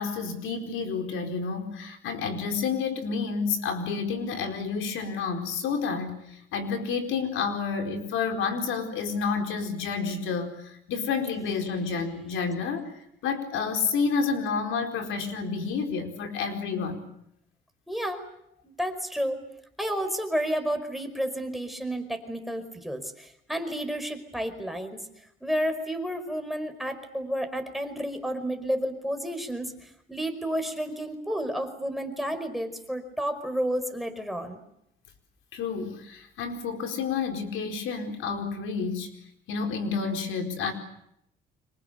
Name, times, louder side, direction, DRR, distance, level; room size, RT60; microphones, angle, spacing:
voice 1, 0.0-12.9 13.2-17.0 35.5-39.2 39.5-40.7, left 5 dB, 90° left, 5 dB, 4.6 m, -30 dB
voice 2, 17.9-18.2 18.6-19.4 19.8-25.1 25.4-34.6, equal, ahead, 6 dB, 5.1 m, -31 dB
29.5 x 26.0 x 6.9 m, 0.76 s
cardioid pair, 90°, 20 cm